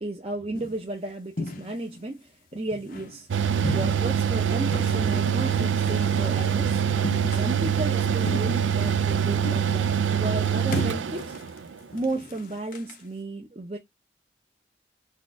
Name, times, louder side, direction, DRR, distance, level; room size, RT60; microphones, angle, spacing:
voice 1, 0.0-3.3 3.7-6.8 7.3-11.3 11.9-13.8, right 2 dB, 30° right, 0.6 m, -34 dB
sound 1, 0.5-0.9 1.4-2.0 2.5-3.2 3.6-4.3 4.7-6.7 7.0-7.7 8.2-9.1 9.4-10.0 10.4-13.0, left 2 dB, 45° left, 0.6 m, -36 dB
Mechanical fan, 3.3-11.7, right 8 dB, 90° right, 0.4 m, -24 dB
4.2 x 2.4 x 4.6 m
head